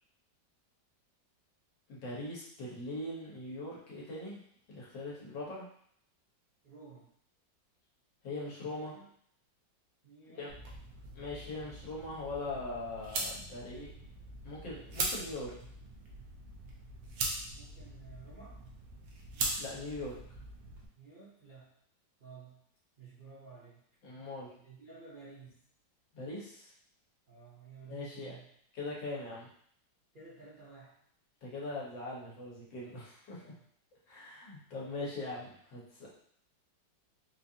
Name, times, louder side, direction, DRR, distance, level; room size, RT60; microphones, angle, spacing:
voice 1, 1.9-4.4 4.7-5.7 8.2-8.9 10.3-10.5 11.1-13.9 14.4-15.5 19.6-20.1 24.0-24.5 26.1-26.7 27.9-28.3 28.7-29.5 31.4-33.4 34.1-36.1, left 2 dB, 80° left, -5 dB, 1.8 m, -41 dB
voice 2, 6.6-7.1 8.6-9.1 10.0-10.5 17.5-18.6 21.0-21.7 22.2-22.6 23.0-23.8 24.6-25.6 27.3-28.5 30.1-31.0 33.3-33.6, right 4 dB, 45° right, -9 dB, 0.7 m, -53 dB
sound 1, 10.5-20.9, right 2 dB, 85° right, 1.5 m, -41 dB
4.3 x 2.6 x 2.7 m, 0.64 s
omnidirectional pair, 2.0 m